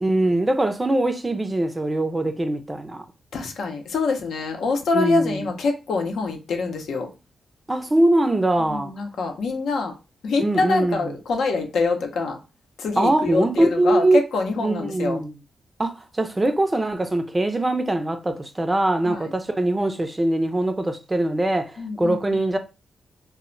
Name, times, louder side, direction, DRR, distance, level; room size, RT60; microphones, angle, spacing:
voice 1, 0.0-3.1 4.9-5.5 7.7-8.9 10.4-11.2 13.0-14.2 14.6-15.3 15.8-22.6, right 1 dB, 20° right, 0.4 m, -22 dB
voice 2, 3.3-7.1 8.6-9.9 10.2-12.4 12.8-15.2 19.0-19.3 21.8-22.4, left 4 dB, 85° left, 0.6 m, -25 dB
2.1 x 2.1 x 3.7 m
cardioid pair, 100°, 0 cm